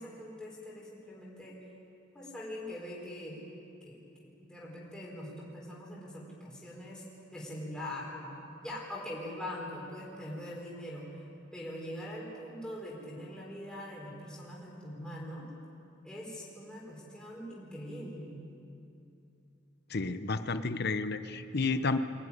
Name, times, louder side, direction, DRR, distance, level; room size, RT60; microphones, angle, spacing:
voice 1, 0.0-1.6 2.1-3.4 3.8-7.0 7.3-11.1 11.5-15.5 16.0-18.4, left 1 dB, 5° left, -5 dB, 4.7 m, -42 dB
voice 2, 19.9-22.0, left 3 dB, 55° left, 11 dB, 0.9 m, -31 dB
24.0 x 17.0 x 9.9 m, 2.6 s
head